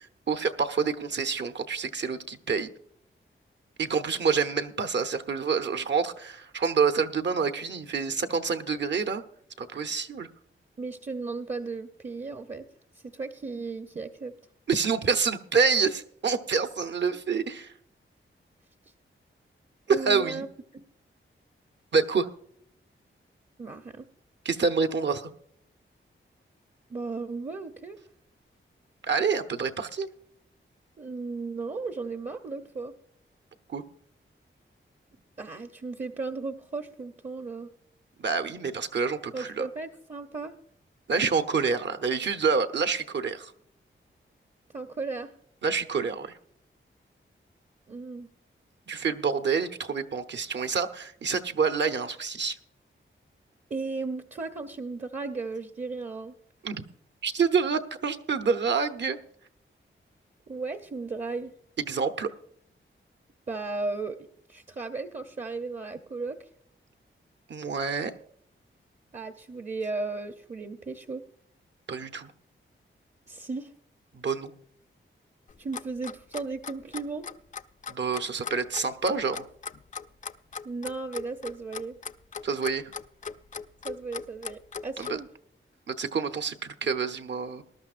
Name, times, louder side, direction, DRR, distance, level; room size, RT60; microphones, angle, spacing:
voice 1, 0.3-2.7 3.8-9.2 9.6-10.3 14.7-17.7 19.9-20.4 21.9-22.3 24.4-25.3 29.0-30.1 33.7-33.8 38.2-39.7 41.1-43.5 45.6-46.4 48.9-52.6 56.6-56.8 57.2-59.2 61.9-62.3 67.5-68.1 71.9-72.3 74.1-74.5 77.9-79.5 82.4-82.9 85.0-85.2 85.9-87.6, right 5 dB, 60° right, 8 dB, 0.9 m, -27 dB
voice 2, 10.8-12.7 13.1-14.3 19.9-20.5 20.7-20.9 23.6-24.0 26.9-28.0 31.0-32.9 35.4-37.7 39.3-40.5 44.7-45.3 47.9-48.3 53.7-56.3 60.5-61.5 63.5-64.2 64.5-66.5 69.1-71.2 73.3-73.7 75.6-77.3 80.6-82.0 83.8-85.3, right 3 dB, 35° right, 7 dB, 0.7 m, -35 dB
Clock, 75.5-85.2, left 6 dB, 35° left, 0.4 m, -38 dB
19.5 x 12.5 x 2.5 m, 0.66 s
wide cardioid pair, 140°, 21 cm